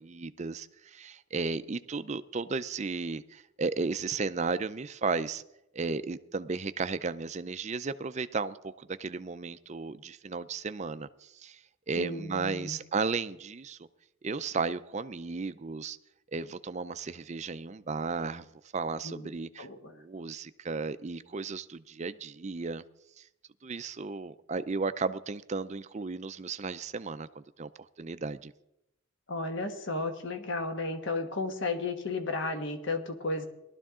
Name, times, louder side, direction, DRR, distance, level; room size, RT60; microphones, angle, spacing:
voice 1, 0.0-5.4 5.7-13.9 14.2-16.0 16.3-18.5 18.7-22.8 23.2-23.3 23.6-27.7 28.0-28.5, right 4 dB, 30° right, 13 dB, 0.5 m, -34 dB
voice 2, 12.0-12.8 19.0-19.3 19.6-19.9 29.3-33.5, left 3 dB, 55° left, 6 dB, 1.3 m, -33 dB
19.0 x 12.5 x 3.7 m, 0.86 s
head